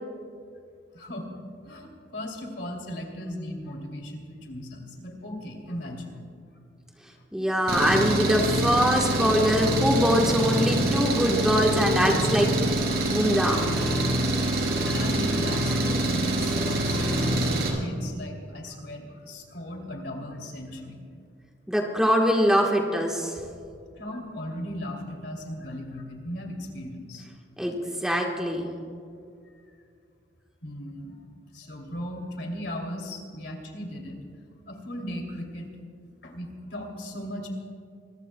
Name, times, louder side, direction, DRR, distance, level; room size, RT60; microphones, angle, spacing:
voice 1, 0.9-1.4 1.6-6.2 14.4-21.0 23.9-27.2 30.6-31.2 31.5-34.2 34.7-35.8 36.2-37.5, left 1 dB, 70° left, 1 dB, 2.8 m, -37 dB
voice 2, 7.3-12.5 13.1-13.7 21.7-23.4 27.6-28.7, equal, 5° right, -1 dB, 1.3 m, -23 dB
Engine, 7.7-17.7, right 1 dB, 55° right, 3.6 m, -25 dB
26.5 x 21.5 x 2.3 m, 2.3 s
head